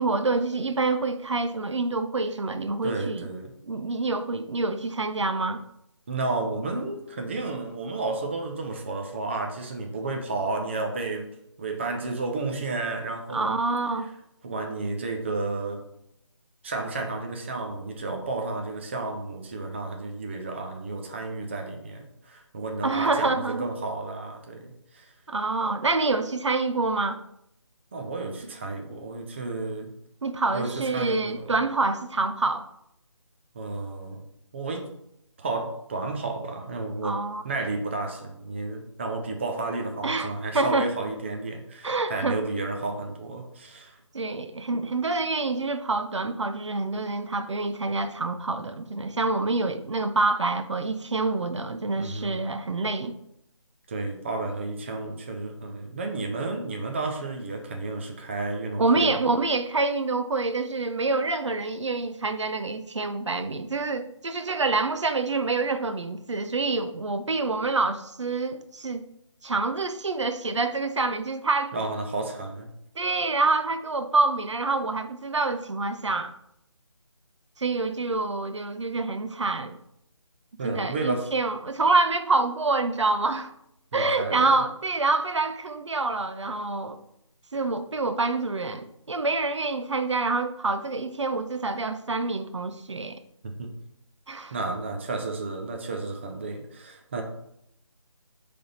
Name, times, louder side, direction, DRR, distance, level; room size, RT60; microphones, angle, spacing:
voice 1, 0.0-3.3 3.7-5.6 13.3-14.1 22.8-23.7 25.3-27.2 30.2-32.7 37.0-37.4 40.0-40.9 41.8-42.4 44.1-53.2 58.8-69.1 69.4-71.7 73.0-76.3 77.6-79.8 80.6-83.5 83.9-87.0 87.5-93.2 94.3-94.5, right 3 dB, 65° right, 0.6 m, -26 dB
voice 2, 2.8-3.5 6.1-11.3 11.6-13.5 14.4-15.9 16.6-25.1 27.9-29.9 30.5-31.5 33.5-34.2 34.5-34.9 35.4-44.0 52.0-52.4 53.9-59.2 71.7-72.7 80.6-81.3 83.9-84.5 93.4-93.7 94.5-97.2, right 3 dB, 20° right, 0.6 m, -32 dB
6.7 x 3.4 x 5.4 m
figure-of-eight pair, 160°, 16 cm